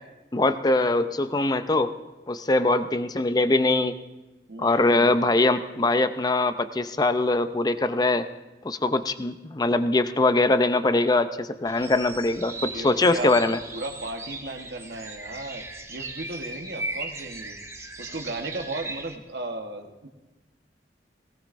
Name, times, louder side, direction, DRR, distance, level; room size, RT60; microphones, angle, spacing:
voice 1, 0.3-1.9 2.3-3.9 4.6-8.2 8.6-13.6, left 2 dB, 25° left, 11 dB, 0.5 m, -22 dB
voice 2, 4.5-5.2 12.6-13.4 13.7-17.6 18.0-20.1, right 2 dB, 65° right, 4 dB, 1.2 m, -35 dB
sound 1, 11.7-19.2, right 2 dB, 15° right, 0.9 m, -38 dB
18.5 x 18.0 x 2.6 m, 1.1 s
head